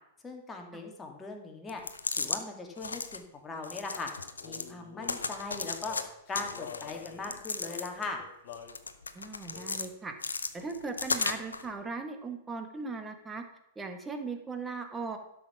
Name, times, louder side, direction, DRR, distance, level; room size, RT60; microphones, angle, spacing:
voice 1, 0.2-1.8 2.1-4.1 4.4-6.0 6.3-8.2, left 3 dB, 15° left, 2 dB, 2.2 m, -39 dB
sound 1, 1.7-2.4 2.8-3.2 3.6-4.7 5.0-6.0 6.3-8.1 8.5-9.9 10.2-11.6, left 4 dB, 80° left, 0.7 m, -35 dB
Male singing, 4.4-8.8 9.5-9.9 10.6-10.8 11.1-12.1, left 7 dB, 50° left, 1.5 m, -48 dB
voice 2, 9.1-10.1 10.5-13.4 13.7-15.2, right 4 dB, 15° right, 5 dB, 1.6 m, -38 dB
12.5 x 5.8 x 6.0 m, 0.82 s
figure-of-eight pair, 100°, 0 cm